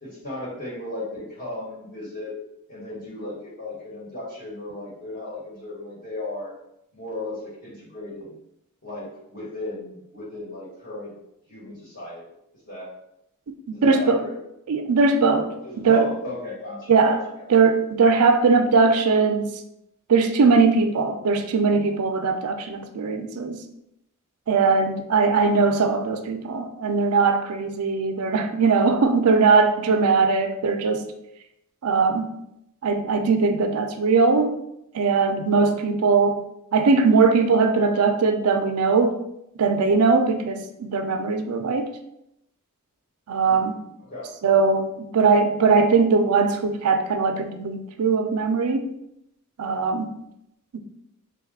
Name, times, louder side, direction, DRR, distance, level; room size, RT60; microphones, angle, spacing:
voice 1, 0.0-2.4 2.7-6.5 6.9-8.4 8.8-11.1 11.5-12.2 12.7-12.9 13.7-14.3 15.6-17.5 17.8-17.9 43.4-44.3, left 2 dB, 45° left, -7 dB, 1.2 m, -36 dB
voice 2, 13.7-14.2 14.7-16.1 16.9-17.2 17.5-19.5 20.1-23.6 24.5-31.1 31.8-32.3 32.8-34.6 34.9-36.4 36.7-39.2 39.6-41.9 43.3-43.8 44.4-48.9 49.6-50.1 50.7-50.8, right 4 dB, 75° right, 7 dB, 0.4 m, -20 dB
3.5 x 2.3 x 3.5 m, 0.81 s
head